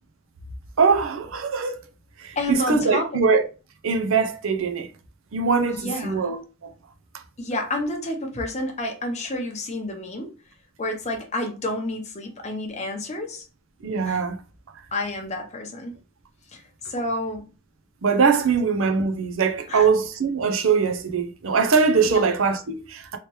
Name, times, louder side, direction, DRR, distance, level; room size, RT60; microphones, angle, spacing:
voice 1, 0.8-1.8 2.2-3.5 3.8-4.9 5.3-6.7 13.8-14.4 18.0-23.2, right 5 dB, 65° right, 0.6 m, -22 dB
voice 2, 2.4-3.2 5.7-6.2 7.4-10.3 10.8-13.5 14.0-14.2 14.9-15.9 16.5-16.6 16.9-17.4 19.7-19.9 22.1-22.3, left 1 dB, 30° left, 0.8 m, -29 dB
3.2 x 3.0 x 3.0 m
head